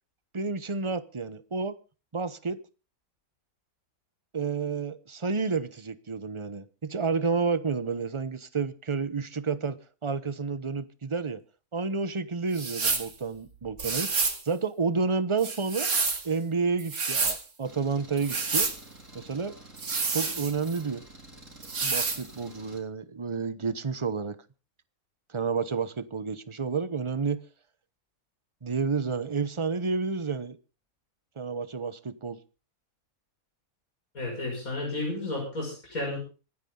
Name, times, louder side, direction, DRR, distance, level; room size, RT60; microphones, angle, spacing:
voice 1, 0.3-1.7 2.1-2.6 4.3-11.4 11.7-15.9 16.2-18.7 19.1-19.5 20.1-21.0 21.8-24.4 25.3-27.4 28.6-30.6 31.4-32.4, right 4 dB, 25° right, 14 dB, 0.9 m, -30 dB
sound 1, 12.5-13.1 13.8-14.4 15.4-16.3 16.8-17.4 18.2-18.8 19.8-20.8 21.6-22.2, right 4 dB, 80° right, 2.6 m, -28 dB
Engine, 17.7-22.8, right 2 dB, 60° right, 4.6 m, -49 dB
voice 2, 34.1-36.2, left 2 dB, 75° left, -1 dB, 6.5 m, -32 dB
25.5 x 9.8 x 3.9 m, 0.34 s
omnidirectional pair, 1.5 m